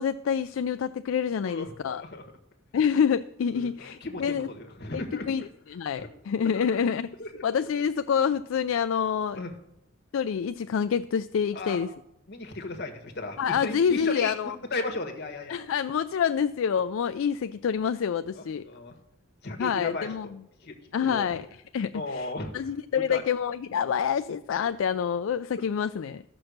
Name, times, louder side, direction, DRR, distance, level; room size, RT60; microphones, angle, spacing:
voice 1, 0.0-2.0 2.7-4.5 4.9-7.1 7.4-9.4 10.1-11.9 13.4-14.5 15.5-18.7 19.6-20.3 20.9-21.5 21.7-26.2, left 7 dB, 75° left, 11 dB, 0.3 m, -27 dB
voice 2, 1.4-2.2 3.5-5.3 6.0-6.1 6.5-6.7 7.2-7.4 9.3-9.5 11.5-11.8 12.3-15.6 18.3-19.0 19.4-20.3 20.6-21.3 21.9-22.5 23.1-23.2, left 2 dB, 55° left, 4 dB, 1.7 m, -36 dB
14.0 x 6.1 x 6.5 m, 0.81 s
head